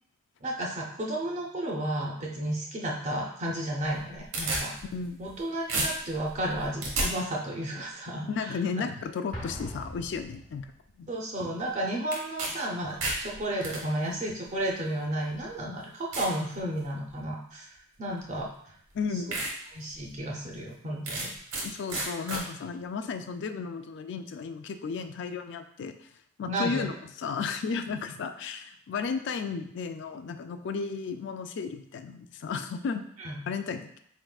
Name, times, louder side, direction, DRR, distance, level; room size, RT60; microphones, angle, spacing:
voice 1, 0.4-4.7 5.2-8.9 11.1-17.7 18.0-18.7 19.7-21.3 26.4-26.8 33.2-33.4, right 1 dB, 35° right, -1 dB, 0.5 m, -33 dB
sound 1, 3.9-5.4 5.7-7.1 12.1-12.5 12.8-13.8 14.7-14.8 15.4-15.5 16.1-16.4 16.9-17.2 18.4-18.5 18.9-19.0 19.3-19.5 19.9-20.0 21.1-21.6 21.9-22.4, right 2 dB, 85° right, 1.2 m, -31 dB
voice 2, 8.2-10.7 11.0-11.1 18.9-19.5 21.6-25.9 26.4-33.0 33.5-34.0, left 5 dB, 60° left, 8 dB, 0.3 m, -34 dB
Explosion, 9.3-11.0, equal, 45° left, 0.9 m, -41 dB
4.3 x 3.6 x 2.3 m, 0.68 s
head